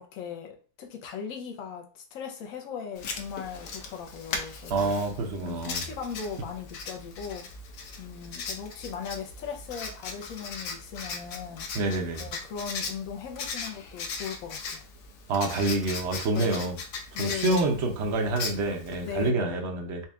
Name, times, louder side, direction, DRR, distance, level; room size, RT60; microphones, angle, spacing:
voice 1, 0.0-4.9 5.4-7.5 8.0-11.7 12.2-14.9 16.3-16.7 17.1-17.7 19.0-19.7, left 7 dB, 60° left, 1.1 m, -38 dB
Writing, 3.0-19.3, left 4 dB, 80° left, 1.3 m, -38 dB
voice 2, 4.7-5.8 11.7-12.2 15.3-16.7 17.2-20.0, right 2 dB, 55° right, 0.9 m, -27 dB
4.3 x 2.4 x 3.5 m
omnidirectional pair, 1.8 m